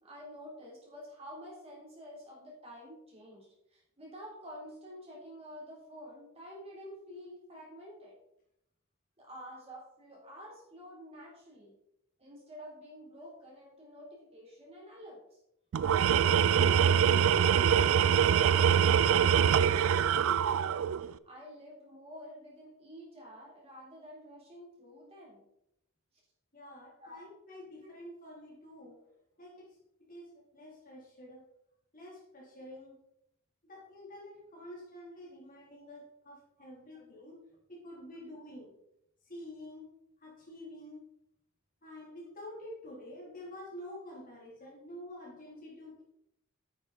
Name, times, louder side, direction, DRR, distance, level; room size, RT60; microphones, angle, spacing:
voice 1, 0.0-8.2 9.2-11.8 12.2-15.4 15.8-20.8 21.2-25.4 27.0-27.2 27.8-27.9 36.9-37.1, equal, 30° right, -4 dB, 3.5 m, -49 dB
Tools, 15.7-21.1, right 8 dB, 70° right, 0.3 m, -24 dB
voice 2, 26.5-29.1 29.4-29.7 30.1-31.4 31.9-33.0 33.6-37.4 37.7-38.7 39.2-39.9 40.2-41.0 41.8-46.0, left 1 dB, 40° left, -3 dB, 3.2 m, -48 dB
9.1 x 6.8 x 4.1 m, 0.79 s
head